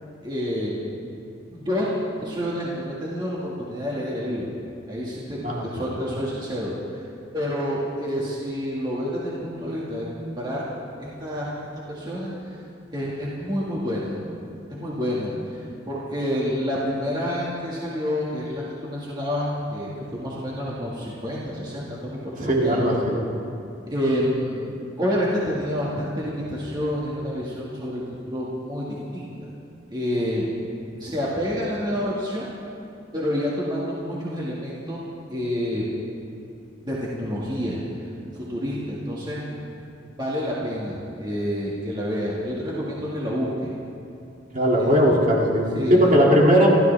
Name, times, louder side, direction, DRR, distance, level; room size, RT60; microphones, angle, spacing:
voice 1, 0.2-1.0 1.5-1.9 2.2-4.5 4.9-7.0 7.3-10.7 11.0-11.5 11.9-12.6 12.9-14.2 14.8-15.6 15.9-22.8 23.9-29.5 29.9-30.5 31.0-32.5 33.1-35.0 35.3-36.0 36.8-37.8 38.3-39.4 40.2-43.7 44.8-44.9 45.7-46.1, equal, 25° right, -6 dB, 2.0 m, -28 dB
voice 2, 22.4-23.2 44.5-46.7, equal, 45° right, -3 dB, 2.7 m, -18 dB
28.5 x 13.0 x 3.5 m, 2.6 s
head